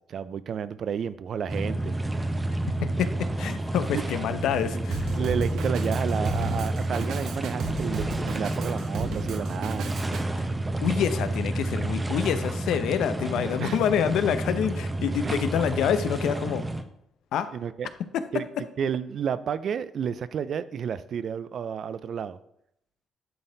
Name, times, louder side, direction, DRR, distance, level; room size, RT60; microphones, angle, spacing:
voice 1, 0.1-2.0 3.9-4.2 4.7-4.8 5.2-10.0 13.6-13.8 15.2-15.4 17.5-17.9 18.3-18.5 18.8-22.4, right 7 dB, 60° right, 14 dB, 0.4 m, -31 dB
sound 1, 1.5-16.8, right 1 dB, 20° right, 0.7 m, -30 dB
voice 2, 3.4-5.1 10.8-16.6 17.3-17.5 18.1-18.2, left 8 dB, 80° left, 11 dB, 0.6 m, -26 dB
Drum kit, 4.9-10.2, right 4 dB, 80° right, 0.9 m, -35 dB
11.0 x 4.2 x 3.9 m, 0.76 s
cardioid pair, 90°, 0 cm